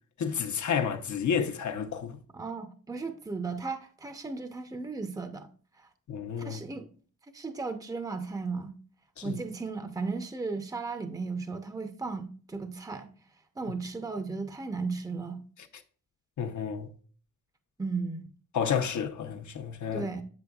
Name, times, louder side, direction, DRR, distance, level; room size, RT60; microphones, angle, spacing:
voice 1, 0.2-2.2 6.1-6.6 9.2-9.4 16.4-16.9 18.5-20.1, left 7 dB, 65° left, 0.9 m, -31 dB
voice 2, 2.3-5.5 6.4-6.9 7.3-8.7 9.2-13.1 13.6-15.4 17.8-18.3 19.9-20.2, right 4 dB, 10° right, 0.7 m, -35 dB
7.6 x 7.0 x 2.4 m
cardioid pair, 75°, 32 cm